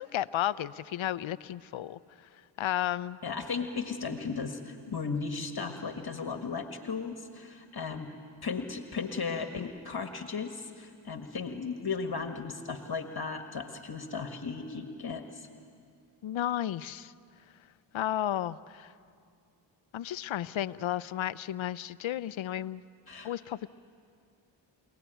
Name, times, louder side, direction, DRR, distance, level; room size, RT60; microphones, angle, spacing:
voice 1, 0.0-2.0 2.6-3.2 16.2-17.1 17.9-18.9 19.9-22.8 23.2-23.7, left 12 dB, 75° left, 16 dB, 0.7 m, -33 dB
voice 2, 3.2-8.1 8.4-15.5 23.1-23.3, left 5 dB, 50° left, 6 dB, 1.7 m, -36 dB
29.5 x 18.0 x 9.1 m, 2.3 s
cardioid pair, 50°, 47 cm